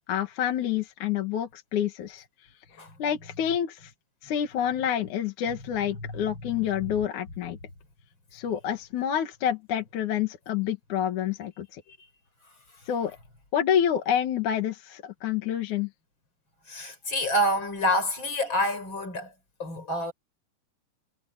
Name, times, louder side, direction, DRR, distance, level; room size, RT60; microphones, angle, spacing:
voice 1, 0.1-2.2 3.0-3.9 4.2-7.6 8.3-11.8 12.9-13.2 13.5-15.9, left 9 dB, 65° left, 3.0 m, -28 dB
voice 2, 16.7-19.3 19.6-20.1, equal, 35° left, 5.8 m, -28 dB
omnidirectional pair, 3.8 m